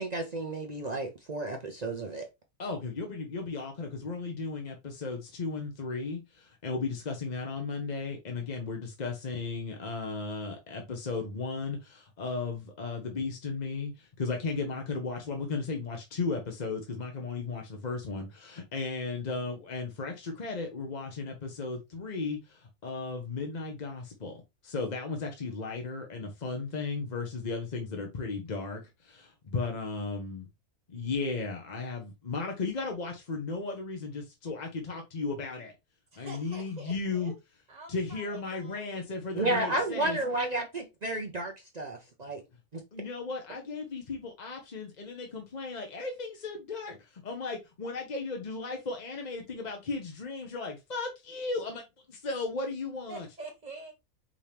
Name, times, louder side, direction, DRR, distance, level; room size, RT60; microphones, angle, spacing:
voice 1, 0.0-2.3 39.3-42.4 42.7-42.8, right 2 dB, 55° right, 0.4 m, -32 dB
voice 2, 2.6-24.4 24.6-30.5 30.9-35.7 36.2-37.3 37.9-40.2 42.9-53.3, left 4 dB, 40° left, 0.7 m, -35 dB
voice 3, 36.1-37.3 37.7-39.0 53.1-53.9, right 2 dB, 30° right, 1.2 m, -46 dB
4.9 x 2.9 x 3.3 m
omnidirectional pair, 1.6 m